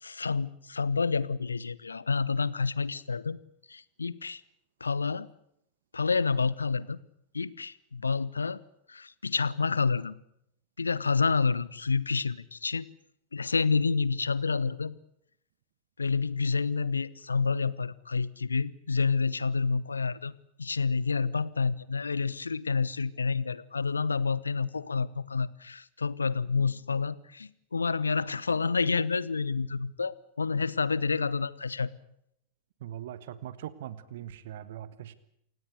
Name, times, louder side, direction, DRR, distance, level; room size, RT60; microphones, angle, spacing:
voice 1, 0.0-3.4 3.7-4.4 4.8-5.3 5.9-7.0 7.3-8.6 8.9-10.1 10.8-12.9 13.3-15.0 16.0-31.9, left 4 dB, 75° left, 20 dB, 1.0 m, -29 dB
voice 2, 32.8-35.1, right 11 dB, 55° right, 16 dB, 1.4 m, -41 dB
28.0 x 17.5 x 8.2 m, 0.75 s
figure-of-eight pair, 90°, 0 cm